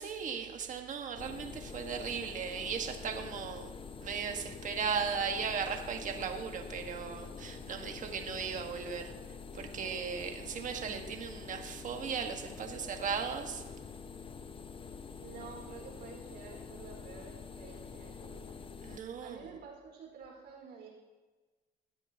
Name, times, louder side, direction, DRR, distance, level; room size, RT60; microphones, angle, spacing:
voice 1, 0.0-3.7 4.0-9.1 9.5-13.6 18.8-19.5, right 6 dB, 50° right, 4 dB, 1.5 m, -37 dB
sound 1, 1.2-19.0, left 5 dB, 30° left, 0.7 m, -46 dB
voice 2, 15.2-18.5 19.2-20.9, right 6 dB, 80° right, -1 dB, 4.6 m, -50 dB
17.5 x 13.0 x 2.9 m, 1.3 s
cardioid pair, 110°, 17 cm